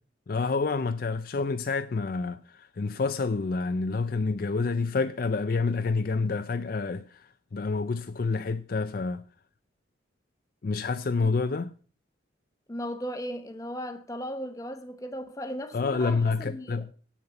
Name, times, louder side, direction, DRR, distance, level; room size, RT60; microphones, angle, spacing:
voice 1, 0.3-9.2 10.6-11.7 15.7-16.9, left 4 dB, 50° left, 0.4 m, -28 dB
voice 2, 12.7-16.9, equal, 15° left, 0.9 m, -37 dB
8.6 x 6.6 x 6.9 m
head